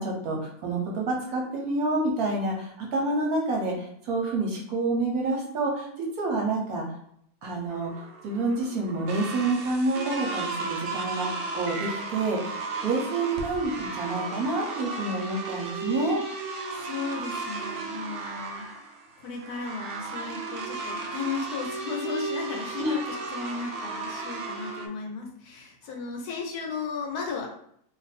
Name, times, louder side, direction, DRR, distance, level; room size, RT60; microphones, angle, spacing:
voice 1, 0.0-6.8 7.4-11.3 11.5-16.2 22.8-23.0, right 2 dB, 65° right, -1 dB, 1.0 m, -28 dB
sound 1, 7.7-24.9, right 3 dB, 85° right, 0.6 m, -35 dB
voice 2, 16.7-18.6 19.2-27.5, left 5 dB, 70° left, 1 dB, 1.1 m, -35 dB
2.6 x 2.5 x 4.1 m, 0.69 s
omnidirectional pair, 1.9 m